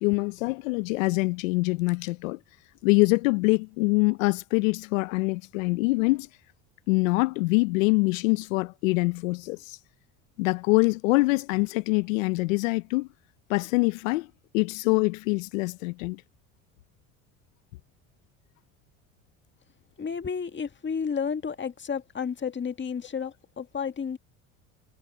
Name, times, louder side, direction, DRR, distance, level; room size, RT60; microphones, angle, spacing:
voice 1, 0.0-2.4 2.8-6.3 6.9-9.8 10.4-13.1 13.5-14.3 14.5-16.2, left 26 dB, 80° left, 0.8 m, -24 dB
voice 2, 20.0-24.2, left 6 dB, 30° left, 1.8 m, -31 dB
hypercardioid pair, 75°, 39 cm